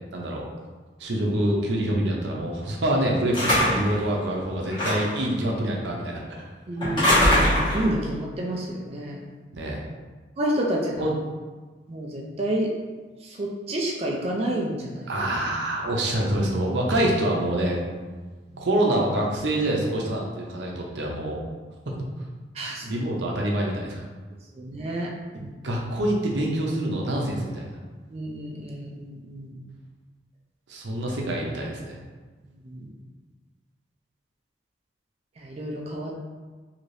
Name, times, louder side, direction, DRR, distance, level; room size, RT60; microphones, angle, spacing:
voice 1, 0.1-0.4 1.0-6.2 9.5-9.8 11.0-11.1 15.1-17.8 18.6-21.4 21.9-22.0 22.8-24.0 25.6-27.7 30.7-32.0, right 1 dB, 75° right, -1 dB, 0.6 m, -26 dB
sound 1, 3.3-4.0 4.7-5.2 6.8-7.9, left 1 dB, 25° left, 1.1 m, -21 dB
voice 2, 6.7-9.2 10.4-11.1 11.9-12.7 13.2-15.1 18.5-18.7 22.5-22.9 24.6-25.1 25.3-25.5 28.1-29.5 32.6-32.9 35.4-36.2, right 1 dB, 35° right, -1 dB, 0.4 m, -29 dB
3.2 x 2.8 x 2.6 m, 1.3 s
head